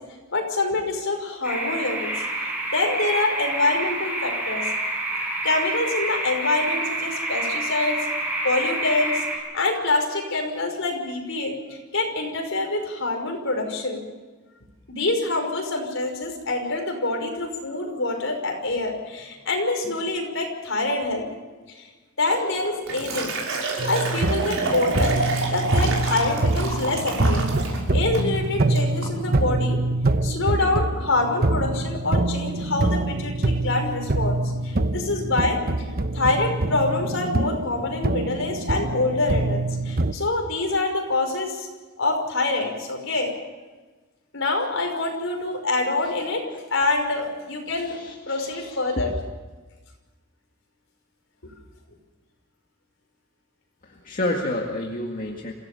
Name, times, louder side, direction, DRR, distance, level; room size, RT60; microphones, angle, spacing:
voice 1, 0.3-2.1 2.4-4.7 5.4-8.0 8.4-14.0 14.9-21.3 21.7-21.9 22.2-23.3 23.8-25.2 25.5-27.4 27.9-29.8 30.2-34.4 34.6-35.6 36.1-41.7 42.0-43.3 44.3-46.4 46.7-48.0 48.3-49.1, left 2 dB, 65° left, 3 dB, 5.8 m, -26 dB
sound 1, 1.4-9.4, right 2 dB, 10° right, 6.7 m, -28 dB
Liquid, 22.3-27.8 28.1-28.4 28.8-29.1, right 3 dB, 70° right, 6.0 m, -29 dB
sound 2, 23.8-40.1, right 2 dB, 45° right, 1.0 m, -25 dB
voice 2, 47.7-49.1 53.8-55.5, left 1 dB, 40° left, 0 dB, 2.1 m, -30 dB
27.5 x 16.5 x 7.1 m, 1.3 s
head